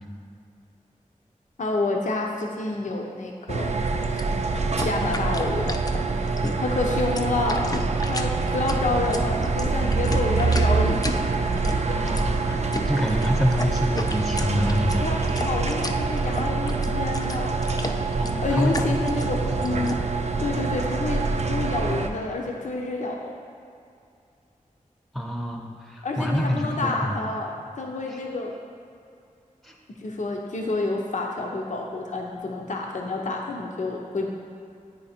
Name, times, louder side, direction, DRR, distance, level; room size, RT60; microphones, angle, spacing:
voice 1, 1.6-3.8 4.8-5.8 6.6-7.7 8.1-11.2 11.6-12.0 15.0-15.2 15.4-17.6 18.4-20.0 20.4-23.3 26.0-28.5 30.0-34.3, left 2 dB, 65° left, 0 dB, 0.7 m, -28 dB
sound 1, 3.5-22.1, right 4 dB, 55° right, 0.5 m, -25 dB
sound 2, 4.0-20.0, left 2 dB, 25° left, 0.4 m, -34 dB
voice 2, 11.9-15.0 18.2-19.1 19.4-19.9 25.1-27.3 28.1-28.2 29.6-29.8, equal, ahead, 1 dB, 0.7 m, -27 dB
9.3 x 3.2 x 4.3 m, 2.5 s
wide cardioid pair, 55°, 14 cm